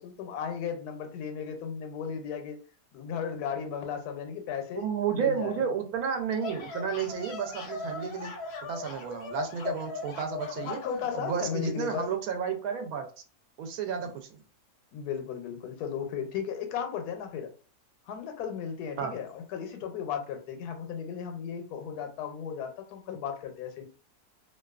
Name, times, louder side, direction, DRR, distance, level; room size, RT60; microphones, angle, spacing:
voice 1, 0.0-2.6 2.9-4.8 5.1-5.6 10.6-12.1 14.9-17.5 18.1-23.9, left 7 dB, 90° left, 5 dB, 1.1 m, -35 dB
voice 2, 4.8-8.3 8.6-10.8 11.1-13.1 13.6-14.3 19.0-19.1, right 7 dB, 75° right, 5 dB, 1.0 m, -31 dB
Mouse Unhappy, 6.2-11.2, left 4 dB, 60° left, 0.7 m, -39 dB
2.6 x 2.2 x 2.3 m, 0.38 s
omnidirectional pair, 1.6 m